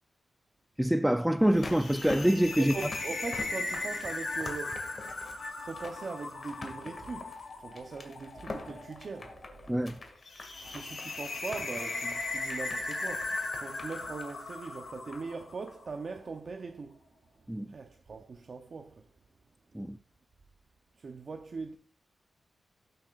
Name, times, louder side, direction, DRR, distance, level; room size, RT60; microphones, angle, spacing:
voice 1, 0.8-2.7 9.7-10.0 17.5-17.7 19.7-20.0, right 1 dB, 5° right, 0.4 m, -25 dB
sound 1, 1.4-15.4 15.7-15.8, left 3 dB, 40° left, 2.1 m, -46 dB
sound 2, 1.5-15.8, left 3 dB, 60° left, 6.2 m, -38 dB
voice 2, 2.6-4.9 5.7-9.8 10.6-13.3 13.6-17.0 17.7-19.0 21.0-21.8, right 4 dB, 50° right, 0.7 m, -41 dB
18.5 x 7.8 x 2.4 m
wide cardioid pair, 120°, 0 cm